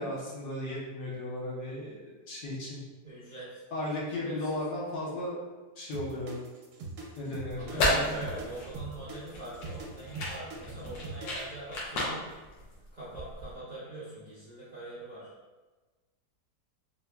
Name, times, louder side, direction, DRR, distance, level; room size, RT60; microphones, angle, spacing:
voice 1, 0.0-2.0 2.3-2.8 3.7-5.4 5.8-6.3 7.2-8.2, left 1 dB, 70° left, -5 dB, 1.5 m, -35 dB
voice 2, 3.0-3.6 4.2-4.6 6.1-6.2 7.6-12.3 12.9-15.3, right 2 dB, 45° right, -11 dB, 0.6 m, -43 dB
sound 1, 5.9-11.6, right 3 dB, 65° right, 1.0 m, -42 dB
sound 2, 7.5-13.5, left 1 dB, 90° left, 1.5 m, -33 dB
4.3 x 2.7 x 2.3 m, 1.3 s
omnidirectional pair, 1.9 m